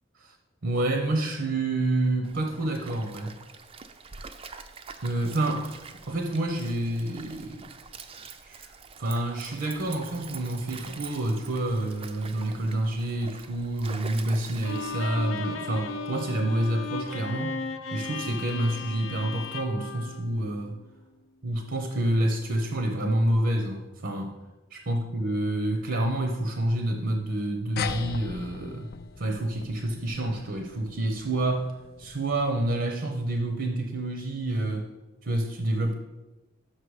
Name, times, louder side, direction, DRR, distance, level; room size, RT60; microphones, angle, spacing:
voice 1, 0.6-3.3 5.0-7.6 8.4-17.5 17.9-20.8 21.4-24.4 24.7-28.9 29.2-31.7 32.0-34.9 35.2-35.9, right 1 dB, 65° right, 4 dB, 0.8 m, -28 dB
Stream, 2.2-15.3, right 5 dB, 30° right, 0.4 m, -45 dB
Bowed string instrument, 14.6-20.9, left 3 dB, 90° left, 0.6 m, -36 dB
sound 1, 27.8-32.6, left 5 dB, 50° left, 0.4 m, -38 dB
6.4 x 5.8 x 4.8 m, 1.0 s
head